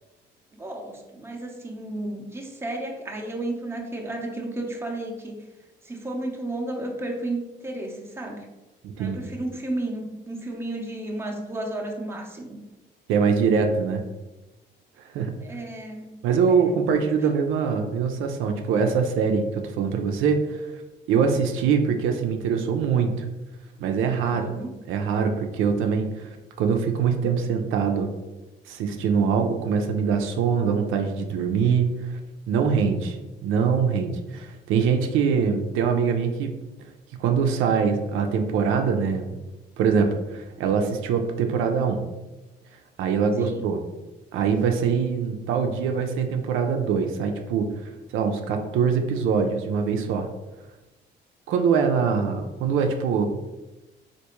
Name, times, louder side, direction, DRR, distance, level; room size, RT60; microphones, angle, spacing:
voice 1, 0.5-5.4 5.8-8.5 9.0-12.6 15.4-16.1 16.5-17.1 24.2-24.7 43.4-43.6, right 2 dB, 10° right, 0 dB, 0.6 m, -33 dB
voice 2, 13.1-14.0 15.0-15.4 16.2-20.8 21.1-23.3 23.8-24.5 24.9-26.3 26.6-28.1 28.7-32.2 32.5-36.6 37.1-39.4 39.8-42.0 43.0-43.8 44.3-50.3 51.5-53.3, right 6 dB, 85° right, 5 dB, 0.4 m, -23 dB
3.4 x 2.5 x 2.9 m, 1.1 s
cardioid pair, 90°, 20 cm